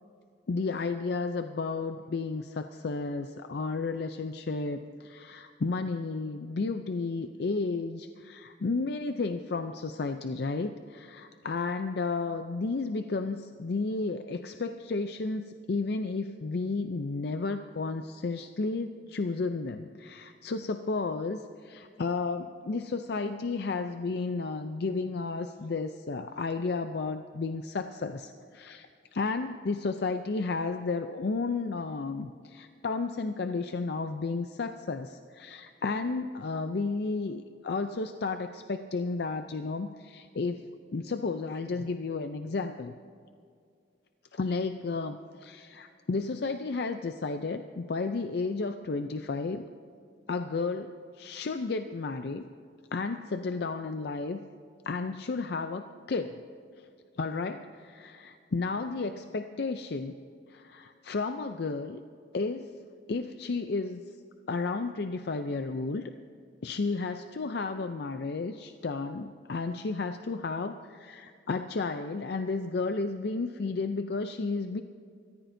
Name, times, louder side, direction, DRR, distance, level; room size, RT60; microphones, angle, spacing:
voice 1, 0.5-42.9 44.3-49.6 50.3-52.4 52.9-54.4 54.8-55.8 56.1-56.4 57.2-60.2 60.5-62.0 62.3-62.7 63.1-64.0 64.5-66.1 66.6-74.8, left 3 dB, 60° left, 8 dB, 0.5 m, -32 dB
25.5 x 14.5 x 2.7 m, 2.2 s
head